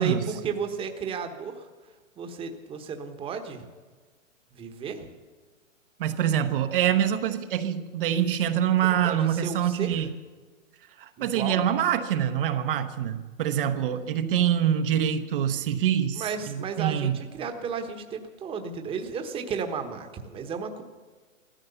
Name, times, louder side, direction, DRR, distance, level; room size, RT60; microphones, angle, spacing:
voice 1, 0.0-1.7 2.2-3.7 4.5-5.1 9.0-10.0 11.2-11.6 16.1-20.8, right 6 dB, 15° right, 6 dB, 1.2 m, -33 dB
voice 2, 6.0-10.1 11.0-17.2, right 10 dB, 45° right, 8 dB, 1.0 m, -25 dB
15.0 x 14.0 x 6.9 m, 1.3 s
hypercardioid pair, 145°, 39 cm